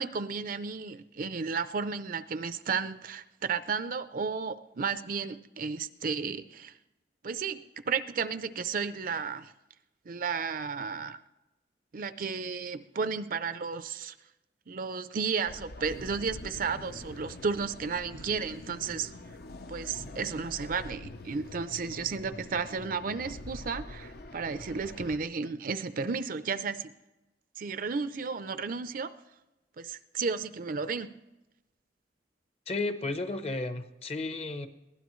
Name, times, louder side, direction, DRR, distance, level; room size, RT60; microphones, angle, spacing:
voice 1, 0.0-6.7 7.2-9.5 10.1-11.2 11.9-14.1 14.7-19.1 19.7-26.9 27.6-29.1 29.8-31.1, right 5 dB, 50° right, 12 dB, 0.6 m, -33 dB
sound 1, 15.4-25.2, left 2 dB, 60° left, 0.8 m, -45 dB
voice 2, 32.7-34.7, left 2 dB, 35° left, 9 dB, 0.9 m, -33 dB
22.5 x 16.0 x 3.1 m, 1.0 s
head